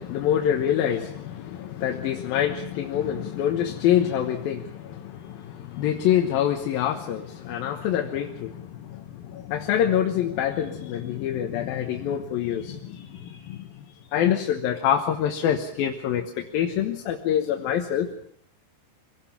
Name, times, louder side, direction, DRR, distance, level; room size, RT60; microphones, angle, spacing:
voice 1, 0.0-13.8 14.1-18.1, left 10 dB, 70° left, 4 dB, 2.8 m, -26 dB
25.0 x 18.0 x 7.1 m, 0.63 s
omnidirectional pair, 4.9 m